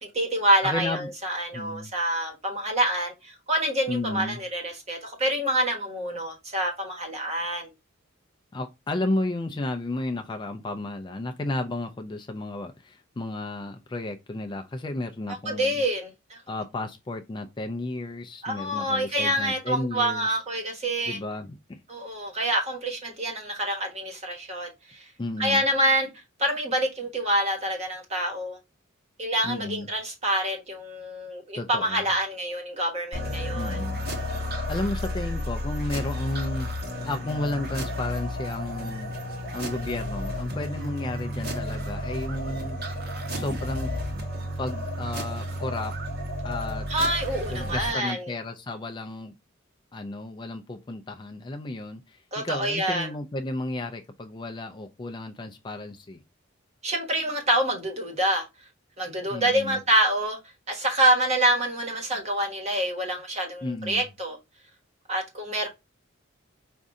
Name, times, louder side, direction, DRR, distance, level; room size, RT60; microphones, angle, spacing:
voice 1, 0.0-7.7 15.4-16.4 18.4-21.2 21.9-25.1 25.4-26.1 26.4-28.6 29.2-33.8 46.9-48.3 52.3-53.1 56.8-58.5 59.0-60.4 60.7-64.4 65.1-65.7, right 1 dB, 30° right, 1.3 m, -26 dB
voice 2, 0.6-1.1 1.5-1.9 3.9-4.4 8.5-15.8 16.5-20.4 21.0-21.8 25.2-25.6 29.4-29.9 31.5-32.0 33.5-34.1 34.7-36.7 37.0-39.1 39.5-42.8 43.3-43.9 44.6-45.9 46.4-46.9 47.5-49.3 49.9-56.2 59.3-59.8 63.6-64.0, left 2 dB, 20° left, 0.3 m, -33 dB
sound 1, 33.1-47.9, left 1 dB, 50° right, 1.1 m, -32 dB
5.2 x 2.6 x 3.6 m
head